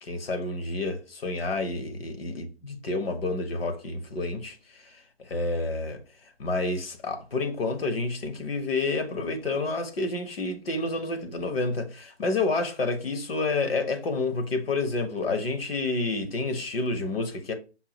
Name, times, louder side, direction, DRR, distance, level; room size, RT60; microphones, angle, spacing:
voice 1, 0.0-6.0 6.4-17.5, left 3 dB, 60° left, 1.0 m, -29 dB
5.5 x 2.3 x 2.9 m
hypercardioid pair, 170°, 33 cm